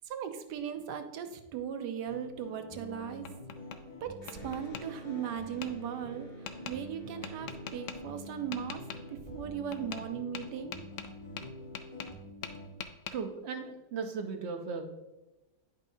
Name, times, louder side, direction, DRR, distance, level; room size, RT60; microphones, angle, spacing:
voice 1, 0.1-3.3 4.0-6.3 6.6-8.8 9.1-10.8, right 8 dB, 85° right, 7 dB, 1.3 m, -38 dB
sound 1, 2.1-12.7, left 1 dB, 25° left, 1.5 m, -47 dB
Tap, 2.8-3.8 4.3-4.8 5.6-5.7 6.5-6.8 7.2-8.0 8.5-9.0 9.7-10.1 10.3-12.2 12.4-13.2, left 8 dB, 70° left, 0.7 m, -42 dB
Electric guitar, 4.2-9.7, right 2 dB, 85° left, 2.3 m, -50 dB
voice 2, 13.1-14.8, right 5 dB, 55° right, 5 dB, 0.8 m, -37 dB
9.9 x 5.5 x 2.7 m, 1.0 s
omnidirectional pair, 1.8 m